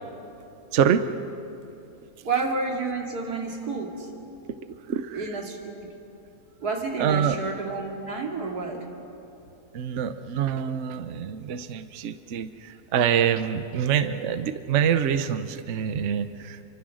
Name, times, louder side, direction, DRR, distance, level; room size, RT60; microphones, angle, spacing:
voice 1, 0.7-1.0 4.9-5.3 7.0-7.4 9.7-16.6, right 8 dB, 55° right, 10 dB, 1.0 m, -25 dB
voice 2, 2.2-4.1 5.1-5.9 6.6-8.9, right 3 dB, 80° right, 1 dB, 3.0 m, -30 dB
29.0 x 24.5 x 6.3 m, 2.7 s
omnidirectional pair, 1.6 m